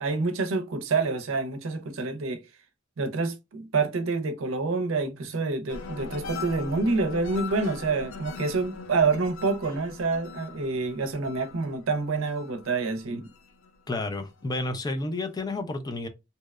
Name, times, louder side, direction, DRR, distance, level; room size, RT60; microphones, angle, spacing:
voice 1, 0.0-2.4 3.0-13.3, right 3 dB, 90° right, 0.5 m, -27 dB
sound 1, 5.7-14.5 14.9-15.4, left 4 dB, 90° left, 0.5 m, -41 dB
voice 2, 13.9-16.1, left 2 dB, 20° left, 0.4 m, -31 dB
2.7 x 2.1 x 2.3 m
head